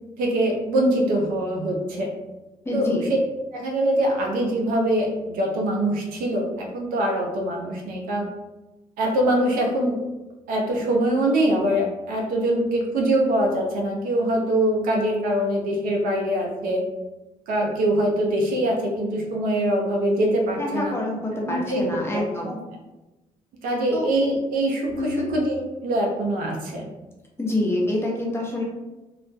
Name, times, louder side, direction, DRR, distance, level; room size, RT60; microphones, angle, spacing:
voice 1, 0.2-2.1 2.7-3.0 3.5-8.3 9.0-10.0 10.5-16.8 17.5-20.9 21.4-22.6 23.6-26.9, right 1 dB, 85° right, 0 dB, 0.5 m, -23 dB
voice 2, 2.6-3.1 20.6-22.6 23.9-24.1 25.0-25.3 27.4-28.6, left 2 dB, 15° left, -3 dB, 0.8 m, -26 dB
2.2 x 2.1 x 2.6 m, 1.1 s
supercardioid pair, 65°, 14 cm